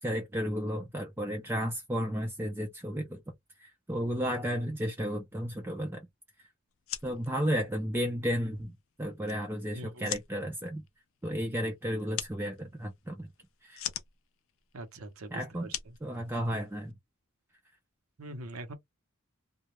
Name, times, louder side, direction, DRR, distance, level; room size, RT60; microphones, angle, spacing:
voice 1, 0.0-3.2 3.6-6.1 7.0-10.8 11.2-13.3 13.6-13.8 15.3-15.7 16.0-17.0, equal, 10° right, 0.4 m, -33 dB
sound 1, 6.7-16.9, left 12 dB, 70° left, 0.4 m, -44 dB
voice 2, 9.7-10.2 14.7-16.0 18.2-18.7, right 1 dB, 85° right, 0.8 m, -43 dB
2.3 x 2.1 x 2.9 m
head